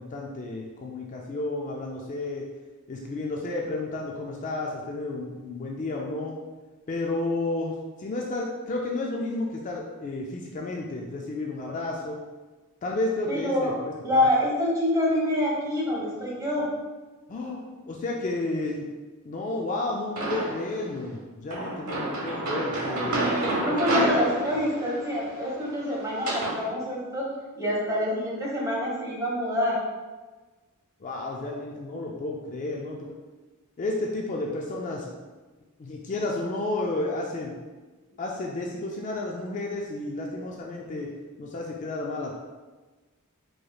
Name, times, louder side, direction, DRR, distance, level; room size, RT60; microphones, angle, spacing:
voice 1, 0.0-2.4 2.9-6.4 6.9-12.2 12.8-14.2 17.3-18.9 19.2-23.3 23.6-23.7 31.0-33.1 33.8-35.1 35.8-37.6 38.2-41.1 41.4-42.3, left 2 dB, 35° left, -1 dB, 0.3 m, -32 dB
voice 2, 13.3-13.7 14.0-16.7 23.1-27.2 27.6-29.8, left 1 dB, 15° right, -6 dB, 1.1 m, -26 dB
sound 1, 20.2-20.8 21.5-26.6, right 2 dB, 90° right, 1.0 m, -29 dB
4.7 x 3.1 x 2.3 m, 1.3 s
head